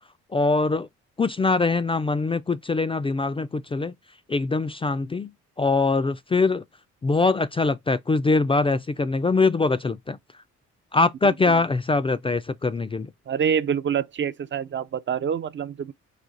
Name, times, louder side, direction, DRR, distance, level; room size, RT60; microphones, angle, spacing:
voice 1, 0.3-0.9 1.2-3.9 4.3-5.3 5.6-6.6 7.0-10.2 10.9-13.1, left 3 dB, 20° left, 0.4 m, -23 dB
voice 2, 11.2-11.5 13.3-15.9, right 7 dB, 40° right, 0.5 m, -26 dB
4.9 x 2.3 x 3.8 m
cardioid pair, 90°, 30 cm